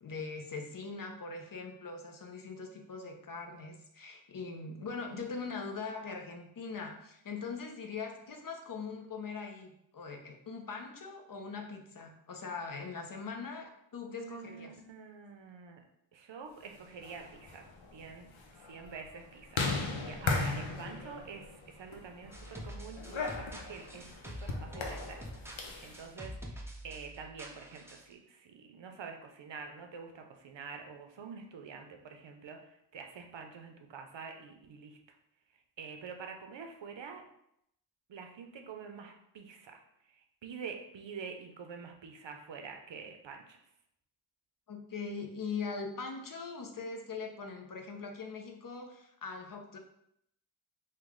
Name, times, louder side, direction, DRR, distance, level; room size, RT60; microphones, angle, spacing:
voice 1, 0.0-14.7 44.7-49.8, left 4 dB, 50° left, 3 dB, 0.5 m, -41 dB
voice 2, 14.0-15.8 16.1-18.3 18.6-25.2 25.5-26.6 26.8-35.0 35.8-37.2 38.1-39.8 40.1-43.6, right 5 dB, 70° right, 4 dB, 0.6 m, -47 dB
sound 1, 16.9-26.0, left 4 dB, 90° left, 0.6 m, -38 dB
sound 2, 22.3-28.1, equal, 5° right, 0.4 m, -46 dB
3.1 x 2.2 x 3.6 m, 0.75 s
wide cardioid pair, 55°, 45 cm